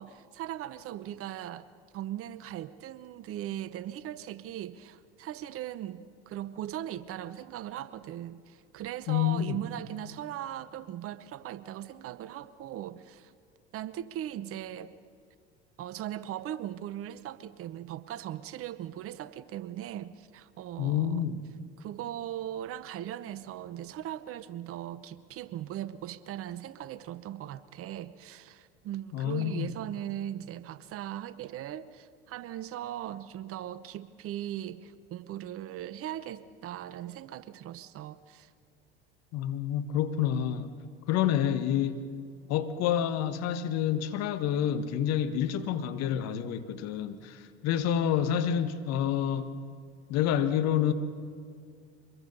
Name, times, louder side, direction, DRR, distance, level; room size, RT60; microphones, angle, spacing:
voice 1, 0.0-1.7 1.9-13.3 13.7-14.9 15.8-21.3 21.8-38.5, right 12 dB, 45° right, 0.9 m, -39 dB
voice 2, 9.1-9.6 20.8-21.4 29.1-29.7 39.3-40.7 41.1-42.0 42.5-49.5 50.1-50.9, left 10 dB, 55° left, 1.5 m, -28 dB
25.0 x 21.0 x 5.5 m
hypercardioid pair, 70°, 32 cm